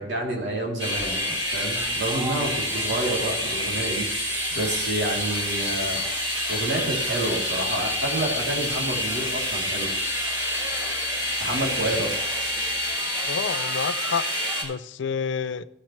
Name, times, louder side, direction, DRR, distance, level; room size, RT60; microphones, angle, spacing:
voice 1, 0.0-6.0 6.5-9.9 11.4-12.2, right 1 dB, 65° right, 3.1 m, -29 dB
sound 1, 0.8-14.6, equal, 25° right, 3.2 m, -27 dB
sound 2, 1.8-12.9, left 4 dB, 25° left, 1.4 m, -50 dB
voice 2, 13.3-14.3 14.6-15.6, left 6 dB, 70° left, 0.5 m, -29 dB
15.5 x 7.4 x 3.2 m
head